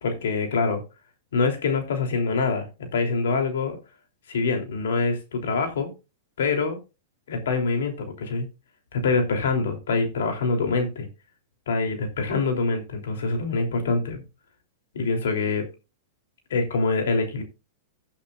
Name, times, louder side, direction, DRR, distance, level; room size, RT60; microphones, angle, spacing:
voice 1, 0.0-0.8 1.3-2.7 2.9-3.8 4.3-5.9 6.4-6.8 7.3-8.4 8.9-11.1 11.7-14.2 14.9-15.6 16.5-17.4, left 4 dB, 80° left, 4 dB, 3.3 m, -25 dB
16.0 x 8.5 x 2.5 m, 0.29 s
hypercardioid pair, 130°, 0 cm